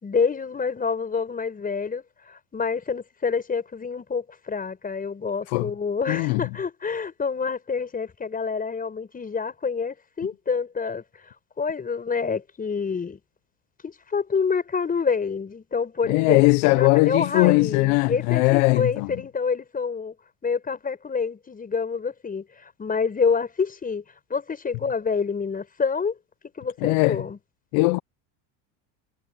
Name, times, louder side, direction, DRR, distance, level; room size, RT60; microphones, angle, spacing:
voice 1, 0.0-13.2 13.8-20.1 20.4-24.0 24.3-26.2 26.6-27.4, left 5 dB, 20° left, 5.5 m, -27 dB
voice 2, 6.1-6.4 16.1-19.1 26.8-27.2 27.7-28.0, left 25 dB, 70° left, 0.9 m, -20 dB
supercardioid pair, 125°, 43 cm